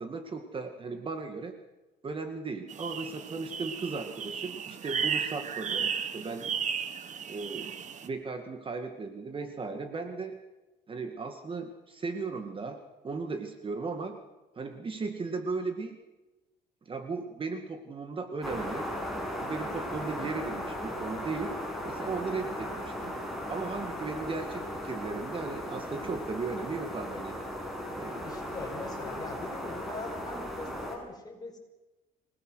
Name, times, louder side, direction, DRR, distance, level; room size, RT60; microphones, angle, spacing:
voice 1, 0.0-1.5 2.0-6.5 7.3-7.7 8.0-10.4 10.9-12.8 13.0-14.2 14.6-16.0 16.9-18.9 19.4-21.6 21.8-23.1 23.5-27.4 27.9-28.4, right 4 dB, 30° right, 6 dB, 2.1 m, -36 dB
sound 1, 2.7-8.1, right 7 dB, 45° right, 1.7 m, -34 dB
sound 2, 18.4-31.0, equal, ahead, 6.9 m, -37 dB
voice 2, 28.2-31.6, left 3 dB, 25° left, 3 dB, 5.6 m, -42 dB
26.0 x 19.0 x 6.4 m, 1.1 s
cardioid pair, 110°, 17 cm